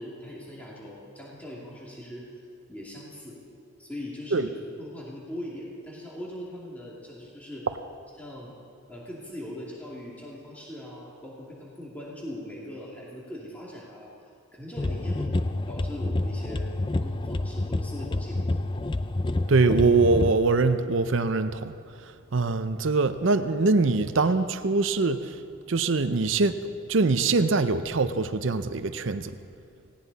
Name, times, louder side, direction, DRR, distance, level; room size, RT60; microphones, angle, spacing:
voice 1, 0.0-2.3 2.7-3.4 3.8-7.7 8.2-8.5 8.9-14.1 14.5-16.7 17.0-18.5 24.2-24.3, left 1 dB, 5° left, -5 dB, 2.5 m, -40 dB
sound 1, 14.8-20.3, left 2 dB, 25° left, 0.4 m, -28 dB
voice 2, 19.5-21.8 22.0-25.4 25.7-29.3, right 3 dB, 70° right, 11 dB, 0.6 m, -23 dB
18.0 x 17.5 x 4.1 m, 2.5 s
head